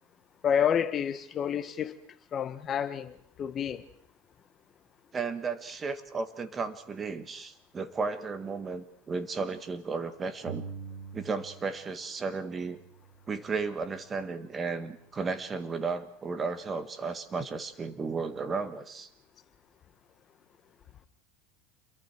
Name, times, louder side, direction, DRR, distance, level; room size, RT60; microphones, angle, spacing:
voice 1, 0.4-2.0 2.3-3.8, left 8 dB, 30° left, 1.4 m, -29 dB
voice 2, 5.1-10.6 11.1-12.8 13.3-19.1, right 4 dB, 20° right, 1.8 m, -34 dB
sound 1, 10.5-12.0 12.2-14.0, right 6 dB, 65° right, 4.7 m, -45 dB
28.5 x 22.5 x 4.6 m
supercardioid pair, 135°, 0 cm